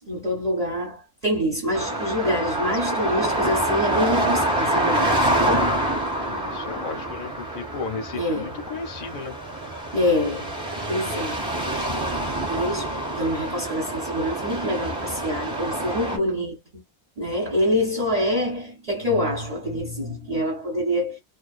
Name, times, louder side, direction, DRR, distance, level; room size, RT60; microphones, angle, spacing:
voice 1, 0.0-5.8 8.2-8.6 9.9-10.6 10.9-11.4 12.3-12.9 13.2-16.8 17.2-21.2, left 1 dB, 35° right, 0.9 m, -26 dB
sound 1, 1.7-16.2, right 1 dB, 5° right, 0.7 m, -26 dB
voice 2, 6.2-9.4, left 5 dB, 50° left, 0.6 m, -34 dB
2.4 x 2.3 x 2.4 m
omnidirectional pair, 1.4 m